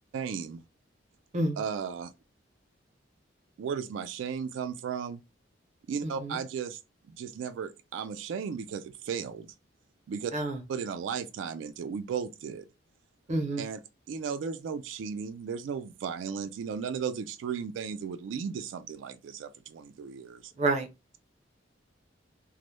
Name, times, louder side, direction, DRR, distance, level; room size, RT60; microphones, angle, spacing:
voice 1, 0.1-0.6 1.6-2.1 3.6-5.2 5.9-6.8 7.1-9.5 10.1-10.3 10.7-12.7 13.6-13.8 14.1-20.5, right 6 dB, 80° right, 0.3 m, -35 dB
voice 2, 6.0-6.4 10.3-10.6 13.3-13.6 20.6-20.9, right 2 dB, 40° right, 0.6 m, -29 dB
2.0 x 2.0 x 3.0 m
head